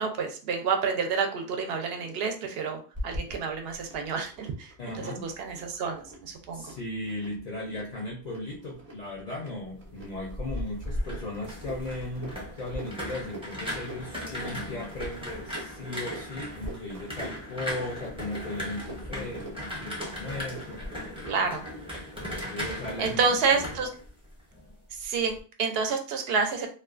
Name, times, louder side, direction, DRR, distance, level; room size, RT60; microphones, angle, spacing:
voice 1, 0.0-6.7 21.2-21.6 23.0-23.9 24.9-26.7, right 5 dB, 70° right, 4 dB, 0.7 m, -29 dB
sound 1, 2.9-21.0, equal, 35° right, 0.9 m, -42 dB
voice 2, 4.8-5.3 6.5-20.8 22.2-23.6, left 1 dB, 50° left, -3 dB, 0.6 m, -37 dB
sound 2, 10.7-24.7 25.0-25.4, left 1 dB, 5° right, 0.5 m, -38 dB
2.4 x 2.2 x 2.4 m, 0.39 s
omnidirectional pair, 1.1 m